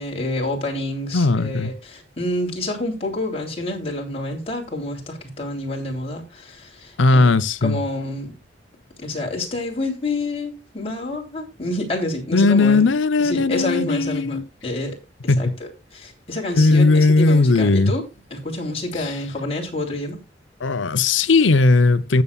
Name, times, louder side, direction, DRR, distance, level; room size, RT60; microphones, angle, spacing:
voice 1, 0.0-7.4 7.6-8.3 9.0-12.9 13.2-15.0 15.2-15.5 15.9-18.0 18.3-20.2, left 1 dB, 35° left, 3.4 m, -28 dB
voice 2, 1.1-1.7 7.0-7.8 12.3-14.5 15.3-15.6 16.5-17.9 19.0-19.1 20.6-22.2, left 3 dB, 80° left, 0.8 m, -17 dB
19.0 x 7.0 x 2.4 m
head